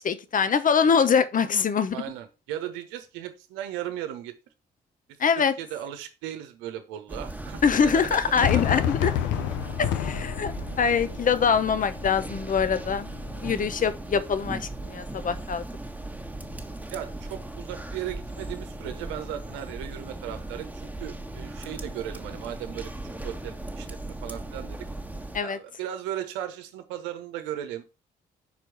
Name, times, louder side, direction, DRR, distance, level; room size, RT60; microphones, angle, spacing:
voice 1, 0.0-2.0 5.2-5.5 7.6-9.1 9.8-13.1 13.4-15.6 25.3-25.6, left 6 dB, 40° left, 0.9 m, -24 dB
voice 2, 1.9-4.3 5.4-8.8 16.9-22.9 23.2-23.9 24.2-24.9 25.4-27.9, right 11 dB, 75° right, 0.9 m, -36 dB
sound 1, 7.1-25.4, right 2 dB, 5° right, 1.4 m, -37 dB
Fireworks, 8.4-13.5, left 10 dB, 65° left, 0.6 m, -30 dB
5.9 x 4.6 x 5.8 m
hypercardioid pair, 45°, 21 cm